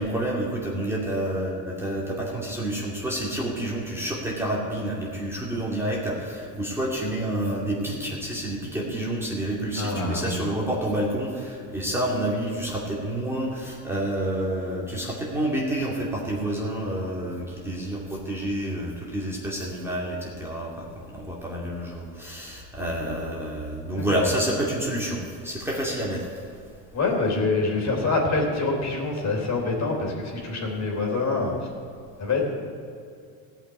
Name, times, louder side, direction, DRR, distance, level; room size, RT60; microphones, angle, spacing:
voice 1, 0.0-20.8 21.1-26.3, right 1 dB, 5° right, -4 dB, 2.4 m, -29 dB
voice 2, 9.8-10.5 24.0-24.3 26.9-31.7 32.2-32.5, left 3 dB, 35° left, 0 dB, 3.4 m, -25 dB
16.0 x 5.9 x 9.5 m, 2.4 s
supercardioid pair, 115°, 45 cm